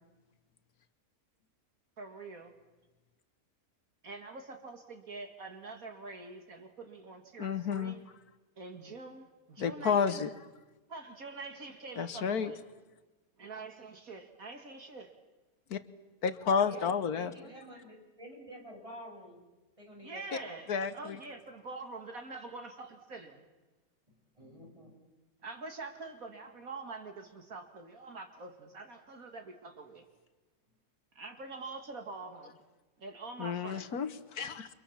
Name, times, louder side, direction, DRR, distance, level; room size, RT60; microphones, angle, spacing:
voice 1, 2.0-2.5 4.0-8.0 8.6-10.3 10.9-12.6 13.4-15.1 20.0-23.4 25.4-30.1 31.2-32.6 33.0-33.9, right 3 dB, 65° right, 5 dB, 2.4 m, -45 dB
voice 2, 7.4-8.0 9.6-10.3 12.0-12.5 15.7-15.8 16.2-17.3 20.7-21.2 33.4-34.7, left 6 dB, 85° left, 11 dB, 1.7 m, -31 dB
voice 3, 16.6-19.4 19.8-20.6 24.4-24.9, equal, 20° right, 0 dB, 7.0 m, -49 dB
30.0 x 25.5 x 7.3 m, 1.2 s
omnidirectional pair, 1.6 m